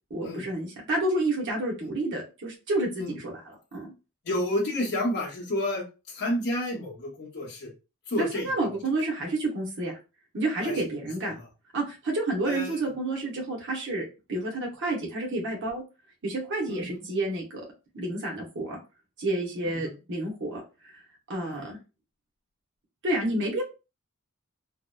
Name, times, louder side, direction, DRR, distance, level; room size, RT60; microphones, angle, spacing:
voice 1, 0.1-3.3 3.7-3.9 8.2-10.0 10.3-11.3 11.7-14.0 14.3-15.8 16.2-17.6 17.9-18.8 19.2-20.9 21.3-21.8 23.0-23.6, right 2 dB, 55° right, -2 dB, 0.8 m, -29 dB
voice 2, 4.2-7.7 8.1-8.5 10.6-11.5 12.5-12.8 16.7-17.1 19.6-20.0 21.4-21.7, left 1 dB, 50° left, -3 dB, 0.8 m, -31 dB
2.8 x 2.0 x 2.2 m, 0.30 s
head